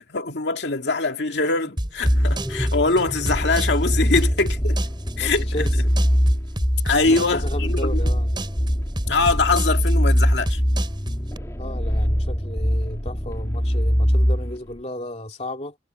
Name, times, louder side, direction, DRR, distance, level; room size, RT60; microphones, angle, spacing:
voice 1, 0.0-4.8 5.2-5.7 6.8-7.9 9.1-10.6, left 3 dB, 80° left, 2.2 m, -23 dB
sound 1, 1.3-6.7, equal, ahead, 7.4 m, -39 dB
sound 2, 1.8-11.4, right 1 dB, 25° right, 4.5 m, -30 dB
sound 3, 2.0-14.6, equal, 15° left, 2.5 m, -22 dB
voice 2, 5.2-5.8 7.1-8.3 11.6-15.8, left 1 dB, 40° left, 2.7 m, -33 dB
head